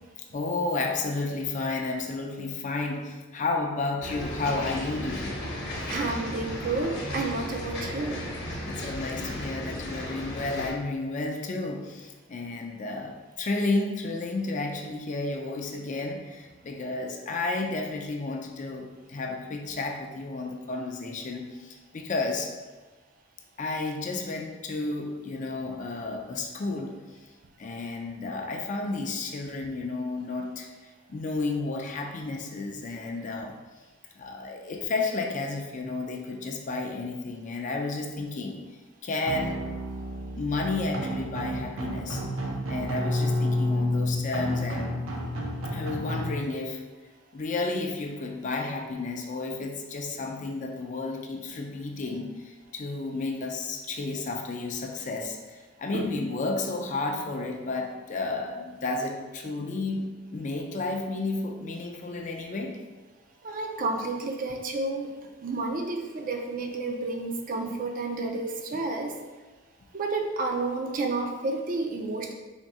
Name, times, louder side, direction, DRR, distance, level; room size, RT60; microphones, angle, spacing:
voice 1, 0.3-5.4 8.7-22.5 23.6-26.9 27.6-30.7 31.1-33.5 34.2-38.6 39.0-39.6 40.4-42.2 42.7-44.9 45.7-46.8 47.3-52.3 52.7-62.8, left 3 dB, 40° left, 2 dB, 0.4 m, -32 dB
sound 1, 4.0-10.7, left 1 dB, 55° left, 0.9 m, -35 dB
voice 2, 5.9-8.3 55.9-56.1 63.4-65.1 65.4-69.1 69.9-72.3, right 3 dB, 45° right, 3 dB, 0.4 m, -30 dB
sound 2, 39.3-46.3, left 1 dB, 85° right, 0.7 m, -30 dB
3.6 x 2.6 x 4.2 m, 1.3 s
head